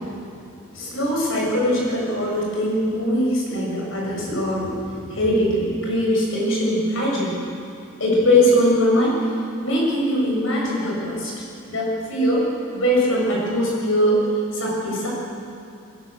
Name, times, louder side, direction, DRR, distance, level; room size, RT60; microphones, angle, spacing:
voice 1, 0.7-7.4 8.0-9.2 9.6-11.3 11.7-12.5 12.7-14.2 14.5-15.1, equal, 70° left, -3 dB, 7.6 m, -21 dB
21.5 x 19.0 x 7.7 m, 2.5 s
head